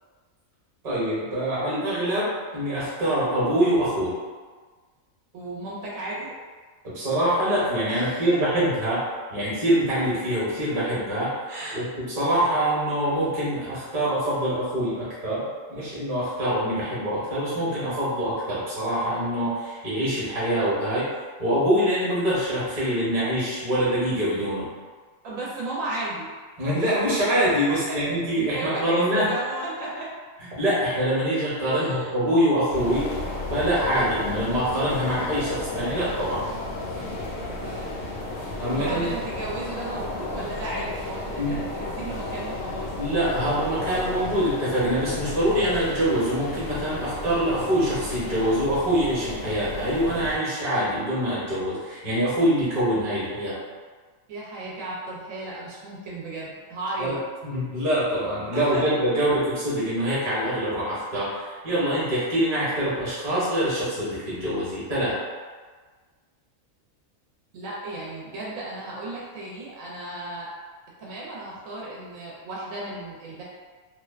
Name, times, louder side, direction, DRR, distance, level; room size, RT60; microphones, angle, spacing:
voice 1, 0.8-4.1 6.8-11.4 11.7-21.1 21.4-24.7 26.6-29.3 30.6-33.1 33.5-36.4 38.6-39.2 41.4-41.6 42.9-53.5 57.0-57.1 57.4-65.2, equal, 35° right, -8 dB, 0.9 m, -24 dB
voice 2, 5.3-6.4 7.9-8.4 11.5-11.8 25.2-26.3 27.7-28.0 28.4-30.1 31.7-32.1 37.4-38.0 38.7-42.9 54.3-57.2 58.5-58.8 67.5-70.5 71.0-73.4, right 2 dB, 80° right, -5 dB, 1.0 m, -35 dB
sound 1, 32.7-50.4, left 2 dB, 75° left, 1.0 m, -33 dB
2.5 x 2.2 x 2.3 m, 1.4 s
omnidirectional pair, 1.4 m